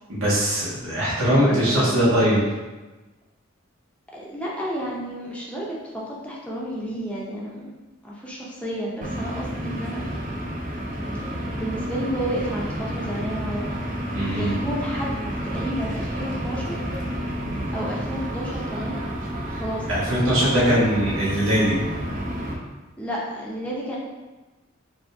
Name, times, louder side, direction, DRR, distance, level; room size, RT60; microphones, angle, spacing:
voice 1, 0.1-2.4 14.1-14.6 19.9-21.7, equal, 90° right, -8 dB, 1.5 m, -21 dB
voice 2, 1.1-2.0 4.1-7.7 8.0-10.0 11.5-13.7 14.3-16.7 17.7-19.0 19.5-20.0 23.0-24.0, equal, 5° left, -5 dB, 0.6 m, -31 dB
sound 1, 9.0-22.5, equal, 40° right, 0.6 m, -30 dB
4.6 x 2.7 x 2.6 m, 1.2 s
head